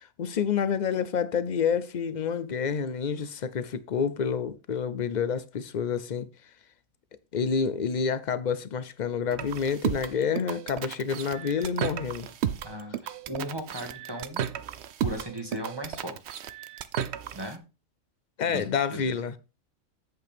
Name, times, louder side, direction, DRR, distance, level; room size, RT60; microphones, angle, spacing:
voice 1, 0.0-6.3 7.3-12.3 18.4-19.4, left 6 dB, 55° left, 0.5 m, -28 dB
sound 1, 9.3-17.5, right 9 dB, 60° right, 0.8 m, -33 dB
voice 2, 12.6-14.4 15.0-16.4 17.3-17.6 18.5-19.0, equal, 20° right, 1.8 m, -37 dB
8.2 x 7.7 x 3.5 m
omnidirectional pair, 1.4 m